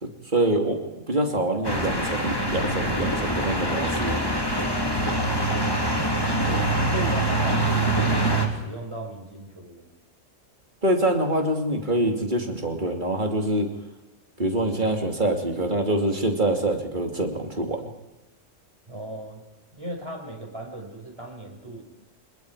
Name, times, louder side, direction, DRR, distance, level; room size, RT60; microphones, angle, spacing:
voice 1, 0.0-4.2 10.8-13.7 14.4-17.9, right 1 dB, 40° right, 3 dB, 3.0 m, -25 dB
sound 1, 1.6-8.5, right 1 dB, 20° left, 2.8 m, -24 dB
voice 2, 4.8-5.5 6.4-9.9 18.9-19.4 19.7-21.8, right 1 dB, 20° right, 0 dB, 6.3 m, -37 dB
26.0 x 21.5 x 5.0 m, 1.0 s
omnidirectional pair, 1.3 m